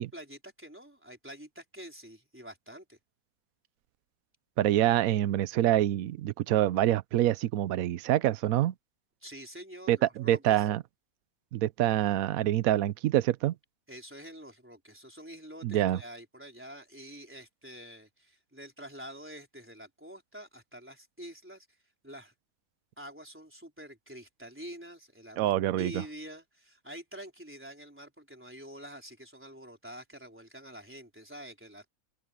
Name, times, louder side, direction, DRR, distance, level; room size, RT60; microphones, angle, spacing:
voice 1, 0.0-3.0 9.2-10.7 13.9-21.7 22.0-22.3 23.0-25.5 25.8-31.8, equal, 10° right, 4.1 m, -47 dB
voice 2, 4.6-8.7 9.9-10.8 11.5-13.5 15.6-16.0 25.4-26.0, right 13 dB, 75° right, 1.0 m, -26 dB
open air
omnidirectional pair, 1.6 m